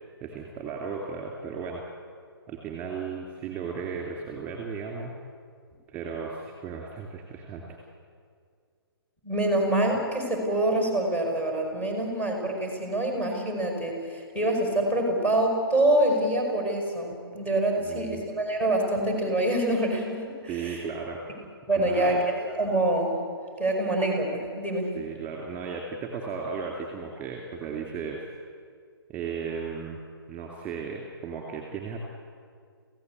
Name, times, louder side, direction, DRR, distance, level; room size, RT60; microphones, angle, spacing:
voice 1, 0.2-1.8 2.5-5.2 5.9-7.8 17.8-18.2 20.5-21.4 21.8-22.2 24.9-28.3 29.1-30.0 30.3-32.0, right 5 dB, 10° right, 1 dB, 2.8 m, -35 dB
voice 2, 9.2-20.9 21.7-23.1 23.6-24.9, right 1 dB, 15° left, 0 dB, 5.3 m, -26 dB
28.0 x 16.0 x 8.3 m, 2.1 s
figure-of-eight pair, 140°, 13 cm